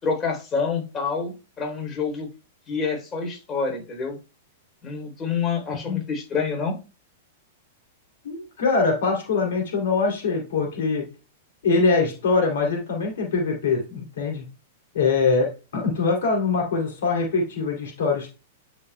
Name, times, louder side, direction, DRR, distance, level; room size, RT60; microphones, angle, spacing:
voice 1, 0.0-2.3 2.7-4.2 4.8-6.8, left 5 dB, 25° left, 2 dB, 3.4 m, -27 dB
voice 2, 8.2-11.0 11.6-14.4 14.9-18.3, left 4 dB, 70° left, 1 dB, 2.7 m, -23 dB
11.0 x 5.2 x 2.2 m, 0.32 s
hypercardioid pair, 105°, 0 cm